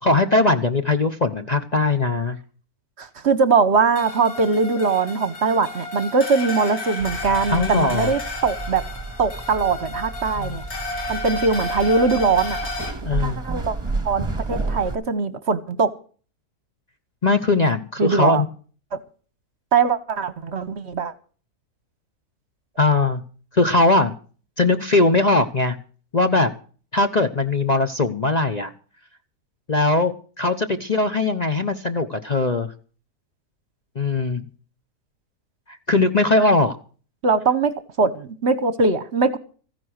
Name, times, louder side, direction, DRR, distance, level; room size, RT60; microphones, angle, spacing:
voice 1, 0.0-2.4 7.5-8.1 10.4-10.6 13.0-13.4 17.2-18.5 22.8-23.2 23.5-24.1 24.6-25.8 26.1-26.5 26.9-28.7 29.7-32.7 34.0-34.5 35.7-36.8, left 2 dB, 35° left, 0.8 m, -20 dB
voice 2, 3.0-8.8 9.2-10.6 11.1-12.6 13.0-13.8 14.0-15.9 18.0-18.4 18.9-19.0 19.7-21.1 37.2-39.4, right 4 dB, 50° right, 1.2 m, -21 dB
sound 1, 4.0-12.9, left 2 dB, 80° left, 3.1 m, -32 dB
sound 2, 7.0-15.0, right 3 dB, 20° right, 1.5 m, -31 dB
14.5 x 10.5 x 6.4 m
omnidirectional pair, 1.6 m